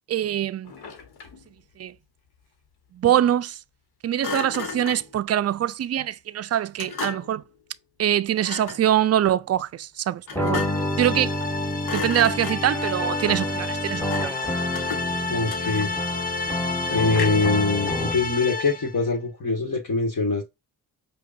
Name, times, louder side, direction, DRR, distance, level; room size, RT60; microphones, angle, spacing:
voice 1, 0.1-0.7 1.8-1.9 2.9-3.6 4.0-7.4 8.0-10.7 11.0-11.3 11.9-14.4, right 11 dB, 40° right, 0.4 m, -24 dB
Thump thud, 0.6-1.5 4.2-5.1 6.8-7.4 8.4-8.9 10.3-10.9 11.3-11.6 11.8-12.8 14.1-14.4 14.7-16.1 17.1-17.6, left 6 dB, 75° left, 1.2 m, -35 dB
sound 1, 10.3-18.4, left 1 dB, 5° left, 1.1 m, -29 dB
sound 2, 10.5-19.0, left 4 dB, 20° left, 0.7 m, -31 dB
voice 2, 15.3-15.9 16.8-20.4, left 3 dB, 50° left, 1.5 m, -23 dB
5.0 x 2.4 x 2.5 m
supercardioid pair, 50°, 39 cm